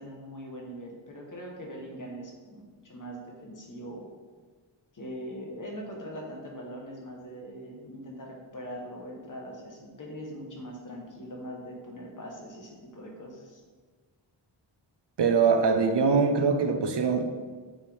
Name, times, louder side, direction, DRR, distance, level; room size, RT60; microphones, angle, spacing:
voice 1, 0.0-4.1 4.9-13.6, equal, 40° left, -1 dB, 1.3 m, -41 dB
voice 2, 15.2-17.3, right 5 dB, 60° right, 5 dB, 0.8 m, -23 dB
8.4 x 5.1 x 3.6 m, 1.5 s
wide cardioid pair, 145°, 47 cm